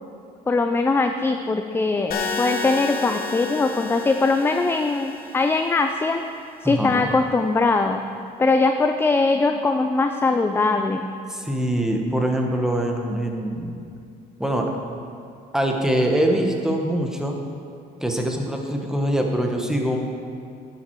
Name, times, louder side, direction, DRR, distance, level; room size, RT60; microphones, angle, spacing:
voice 1, 0.5-6.2 6.6-8.0 8.4-11.1, left 3 dB, 15° left, 6 dB, 0.4 m, -21 dB
sound 1, 2.1-6.1, left 4 dB, 60° left, 1.0 m, -32 dB
voice 2, 6.6-7.1 11.3-13.8 14.4-14.7 15.5-17.3 18.0-20.0, right 1 dB, 5° right, 2 dB, 1.1 m, -23 dB
11.0 x 7.4 x 4.6 m, 2.4 s
cardioid pair, 110°, 17 cm